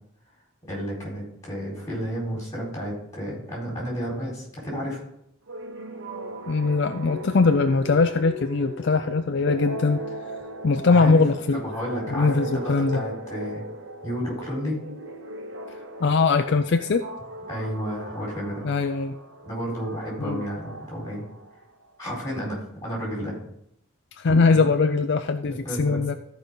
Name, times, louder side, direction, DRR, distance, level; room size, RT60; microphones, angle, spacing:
voice 1, 0.7-5.0 10.8-11.2 11.5-13.6 14.0-14.8 17.5-18.6 19.4-21.2 22.0-23.3 24.3-24.7 25.5-26.0, equal, 15° left, -4 dB, 4.3 m, -31 dB
sound 1, 5.5-21.9, right 1 dB, 60° right, 1.0 m, -38 dB
voice 2, 6.5-10.0 10.6-11.7 12.1-13.0 16.0-17.0 18.6-19.1 20.2-20.4 24.2-26.1, left 4 dB, 55° left, 7 dB, 0.4 m, -21 dB
14.5 x 5.2 x 3.7 m, 0.74 s
head